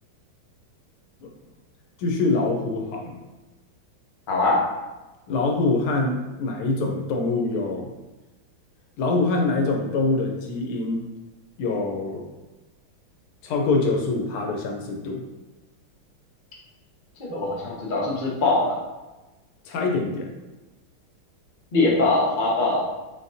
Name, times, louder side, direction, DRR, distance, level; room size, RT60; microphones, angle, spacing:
voice 1, 2.0-3.2 5.3-7.9 9.0-11.1 11.6-12.3 13.4-15.2 19.6-20.3, left 3 dB, 90° left, 2 dB, 1.6 m, -24 dB
voice 2, 4.3-4.6 17.2-18.8 21.7-22.9, left 2 dB, 45° left, -4 dB, 0.6 m, -22 dB
4.3 x 3.7 x 2.7 m, 1.1 s
omnidirectional pair, 2.3 m